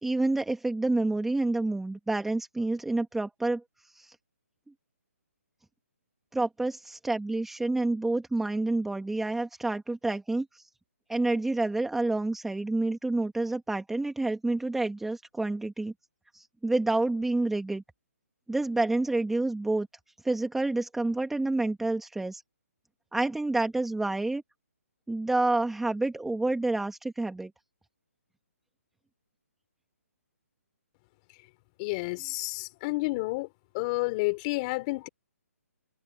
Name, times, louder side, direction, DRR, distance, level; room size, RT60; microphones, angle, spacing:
voice 1, 0.0-3.6 3.9-4.1 6.3-10.6 11.1-15.9 16.3-17.8 18.5-19.9 20.2-22.4 23.1-24.4 25.1-27.5, right 2 dB, 5° right, 1.7 m, -28 dB
voice 2, 31.8-33.5 33.7-35.1, left 24 dB, 25° left, 3.8 m, -30 dB
hypercardioid pair, 155°, 8 cm